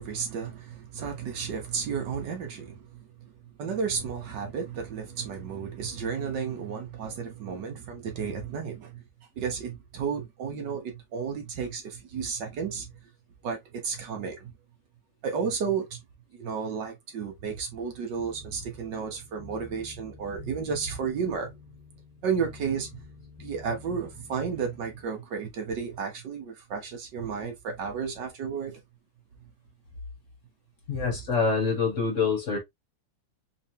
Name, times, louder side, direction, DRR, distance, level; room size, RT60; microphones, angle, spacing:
voice 1, 0.0-9.0 9.4-12.9 13.4-14.5 15.2-16.0 16.3-21.5 22.2-23.0 23.4-28.8 30.9-31.2, right 6 dB, 65° right, 1.6 m, -33 dB
sound 1, 18.1-25.0, left 4 dB, 5° left, 1.5 m, -49 dB
voice 2, 30.9-32.6, left 5 dB, 45° left, 1.5 m, -26 dB
3.9 x 3.2 x 2.7 m
omnidirectional pair, 2.1 m